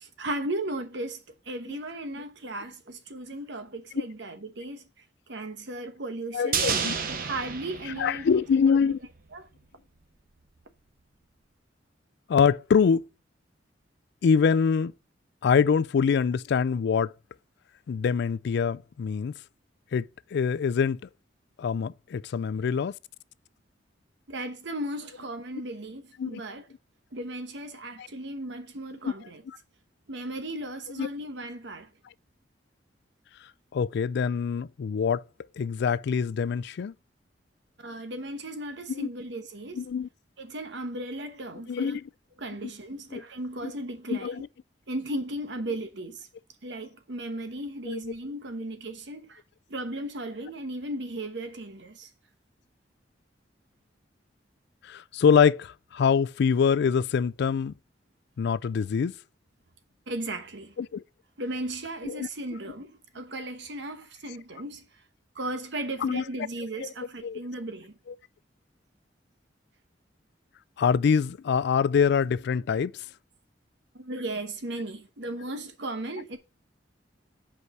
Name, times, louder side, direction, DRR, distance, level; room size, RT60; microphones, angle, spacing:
voice 1, 0.0-4.9 5.3-6.7 7.1-8.9 9.3-9.5 24.3-26.7 27.1-29.4 30.1-31.9 37.8-39.8 40.4-42.0 42.4-44.4 44.9-46.3 46.6-49.4 49.7-52.1 60.1-60.7 61.4-64.8 65.3-67.9 73.9-76.4, right 1 dB, 70° right, 1.1 m, -36 dB
voice 2, 6.3-6.9 8.0-9.0 12.3-13.0 14.2-14.9 15.4-17.1 17.9-19.3 19.9-20.0 20.3-21.0 21.6-22.9 26.2-26.4 28.0-28.1 29.0-29.1 31.0-31.1 33.7-35.2 35.6-36.9 38.9-39.1 39.8-40.1 41.7-42.0 43.1-43.2 43.6-43.7 44.1-44.4 47.9-48.0 54.9-57.7 58.4-59.1 60.8-61.0 62.0-62.3 66.0-66.2 67.2-67.4 70.8-72.9, left 6 dB, 65° left, 0.3 m, -24 dB
sound 1, 6.5-8.9 9.2-9.3, right 6 dB, 50° right, 0.9 m, -31 dB
5.4 x 4.8 x 6.0 m
head